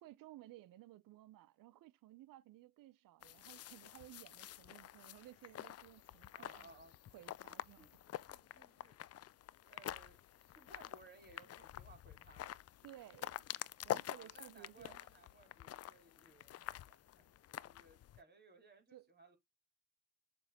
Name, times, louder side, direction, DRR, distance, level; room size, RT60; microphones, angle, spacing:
voice 1, 0.0-6.7 7.1-7.9 12.8-13.4 13.8-15.0 18.9-19.1, right 15 dB, 85° right, 0.8 m, -57 dB
sound 1, 3.2-18.2, left 12 dB, 50° left, 0.5 m, -48 dB
voice 2, 6.3-7.0 7.4-9.0 9.6-12.5 14.1-19.4, right 2 dB, 30° right, 3.5 m, -63 dB
7.2 x 3.5 x 4.1 m
cardioid pair, 80°, 33 cm